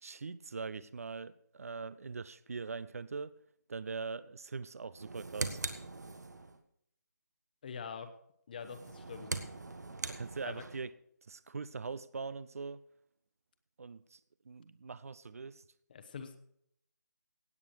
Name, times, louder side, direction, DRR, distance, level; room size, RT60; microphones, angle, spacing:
voice 1, 0.0-3.3 3.7-5.6 10.1-10.9 11.3-12.8 13.8-14.2 14.5-15.6, right 4 dB, 55° right, 18 dB, 0.6 m, -42 dB
sound 1, 4.9-6.6 8.6-10.9, right 3 dB, 70° right, 1.5 m, -41 dB
voice 2, 7.6-8.1 8.5-9.3 10.4-10.6 15.9-16.4, left 6 dB, 30° left, 9 dB, 1.0 m, -44 dB
17.0 x 8.5 x 4.7 m, 0.71 s
figure-of-eight pair, 155°, 10 cm